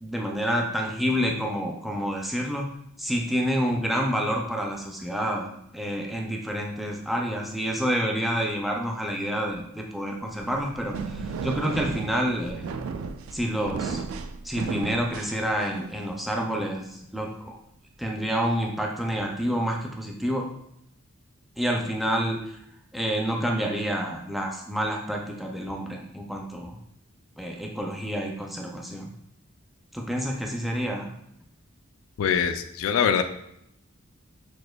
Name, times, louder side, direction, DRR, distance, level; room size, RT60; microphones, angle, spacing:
voice 1, 0.0-2.7 3.0-12.7 13.3-14.0 14.4-17.6 18.0-20.5 21.6-22.4 22.9-26.8 27.4-29.1 29.9-31.1, equal, ahead, 0 dB, 0.4 m, -28 dB
sound 1, 10.3-16.0, right 5 dB, 80° right, 0.3 m, -34 dB
voice 2, 32.2-33.2, left 7 dB, 75° left, 10 dB, 0.3 m, -23 dB
6.2 x 2.5 x 2.2 m, 0.76 s
head